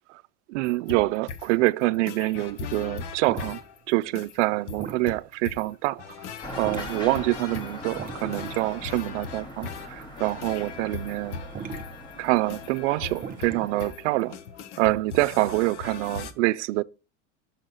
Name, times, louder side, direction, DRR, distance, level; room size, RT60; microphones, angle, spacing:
voice 1, 0.5-3.6 3.9-6.0 6.6-11.4 12.2-14.4 14.8-16.8, right 19 dB, 75° right, 0.5 m, -26 dB
sound 1, 0.6-16.3, left 5 dB, 60° left, 1.1 m, -39 dB
sound 2, 2.3-5.7 5.9-6.3 6.5-7.2 7.4-8.7 9.0-9.3 9.7-9.8 10.1-10.6 11.3-11.9 12.5-12.7 13.1-14.2, right 6 dB, 25° right, 0.7 m, -39 dB
sound 3, 6.4-14.3, left 1 dB, 10° left, 1.2 m, -42 dB
6.5 x 6.4 x 3.9 m
supercardioid pair, 130°, 37 cm